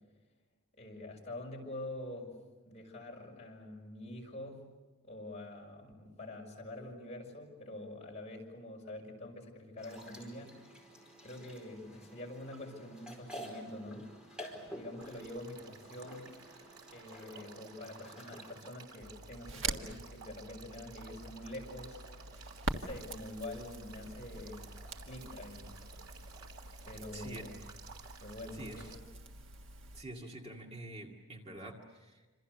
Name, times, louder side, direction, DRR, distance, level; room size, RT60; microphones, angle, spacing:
voice 1, 0.8-2.3 2.6-4.7 5.0-10.6 11.2-14.1 14.5-16.3 16.9-22.0 22.7-24.6 25.0-25.8 26.9-27.6 28.2-28.9, left 1 dB, 30° left, -1 dB, 6.0 m, -46 dB
sound 1, 9.8-18.5, equal, 5° right, 4.8 m, -50 dB
Male speech man speaking / Stream / Trickle dribble, 15.0-29.0, right 5 dB, 90° right, 3.2 m, -54 dB
Crackle, 19.0-30.0, right 3 dB, 65° right, 1.6 m, -44 dB
voice 2, 27.1-27.4 28.5-28.9 29.9-32.3, right 1 dB, 30° right, 1 dB, 2.2 m, -47 dB
27.5 x 27.0 x 6.8 m, 1.2 s
head